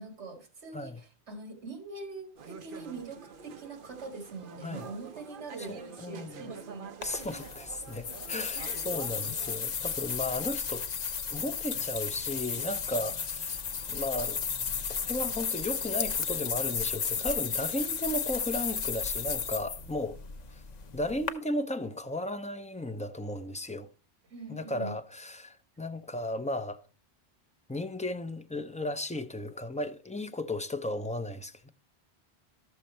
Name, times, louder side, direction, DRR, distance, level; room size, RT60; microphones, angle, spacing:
voice 1, 0.0-7.3 8.6-8.9 24.3-24.9, right 3 dB, 80° right, 2.1 m, -43 dB
sound 1, 2.4-9.6, right 6 dB, 55° right, 0.9 m, -47 dB
voice 2, 5.7-6.5 7.0-10.8 11.3-14.4 14.9-20.2 20.5-20.6 20.9-23.9 24.5-26.8 27.7-31.7, left 1 dB, 10° left, 0.3 m, -35 dB
sound 2, 7.0-21.3, left 6 dB, 45° left, 0.7 m, -34 dB
12.5 x 6.9 x 4.3 m
omnidirectional pair, 1.1 m